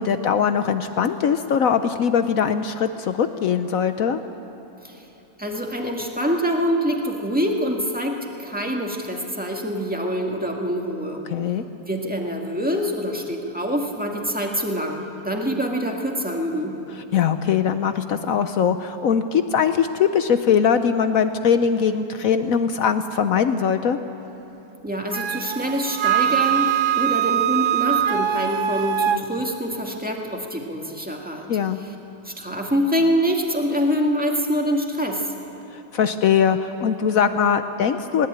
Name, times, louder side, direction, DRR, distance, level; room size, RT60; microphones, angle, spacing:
voice 1, 0.0-4.2 11.3-11.6 17.1-24.0 31.5-31.8 35.7-38.3, left 7 dB, 70° left, 9 dB, 0.8 m, -21 dB
voice 2, 5.4-11.3 11.9-16.8 24.8-31.5 31.8-31.9 32.2-35.3, equal, 5° right, 1 dB, 1.6 m, -25 dB
Wind instrument woodwind instrument, 25.1-29.2, right 10 dB, 80° right, 1.6 m, -22 dB
20.0 x 18.0 x 8.8 m, 3.0 s
omnidirectional pair, 2.2 m